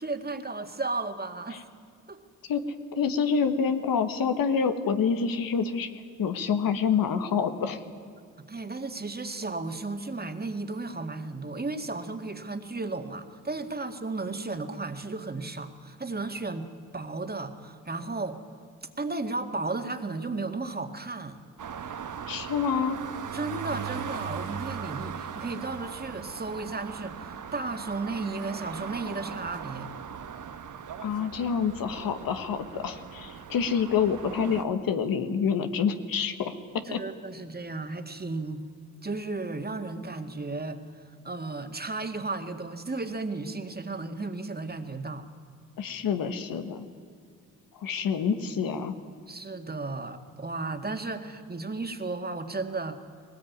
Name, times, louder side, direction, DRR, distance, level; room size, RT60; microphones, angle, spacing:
voice 1, 0.0-1.7 2.1-2.2 8.4-16.7 16.9-18.5 19.0-21.4 23.3-29.9 36.9-38.7 39.0-40.8 41.2-45.2 49.3-53.0, right 3 dB, 30° right, 7 dB, 2.0 m, -34 dB
voice 2, 2.9-7.8 22.3-23.0 31.0-36.5 36.9-37.0 45.8-46.9 47.8-49.0, left 6 dB, 85° left, 9 dB, 1.5 m, -27 dB
sound 1, 21.6-34.6, right 7 dB, 65° right, 1.2 m, -39 dB
20.0 x 19.0 x 9.5 m, 2.1 s
cardioid pair, 65°, 34 cm